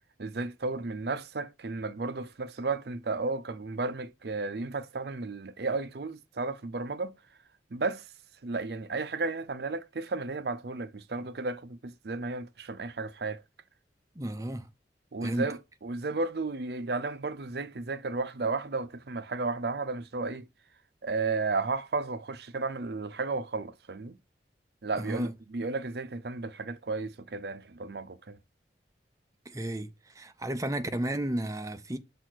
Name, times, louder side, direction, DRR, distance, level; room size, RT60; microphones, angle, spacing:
voice 1, 0.2-7.1 7.7-8.0 8.4-13.4 15.1-20.5 21.0-24.2 24.8-28.4, right 3 dB, 60° right, 0.6 m, -33 dB
voice 2, 14.2-14.7 15.2-15.4 25.0-25.3 29.5-29.9 30.2-32.0, right 1 dB, 20° right, 0.6 m, -32 dB
6.2 x 4.9 x 4.5 m
head